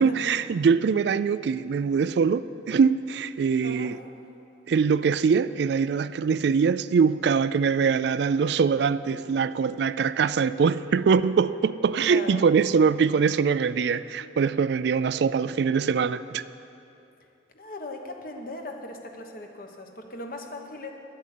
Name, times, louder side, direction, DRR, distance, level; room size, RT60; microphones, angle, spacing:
voice 1, 0.0-4.0 4.7-16.4, right 6 dB, 70° right, 0.3 m, -23 dB
voice 2, 3.6-3.9 12.0-12.4 17.5-20.9, left 1 dB, 50° left, 1.2 m, -38 dB
11.5 x 8.5 x 8.3 m
head